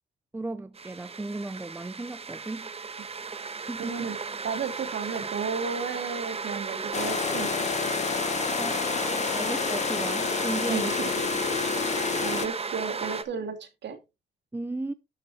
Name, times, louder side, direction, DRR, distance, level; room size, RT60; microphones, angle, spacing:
voice 1, 0.3-2.7 3.7-4.1 8.6-8.8 9.3-10.9 11.5-12.0 14.5-14.9, right 2 dB, 10° right, 0.6 m, -35 dB
sound 1, 0.7-13.2, right 5 dB, 30° right, 1.3 m, -34 dB
voice 2, 3.8-4.2 4.4-7.9 10.7-11.3 11.8-14.0, right 6 dB, 60° right, 2.6 m, -34 dB
sound 2, 6.9-12.5, left 7 dB, 35° left, 0.5 m, -29 dB
12.0 x 6.8 x 3.5 m
cardioid pair, 90°, 20 cm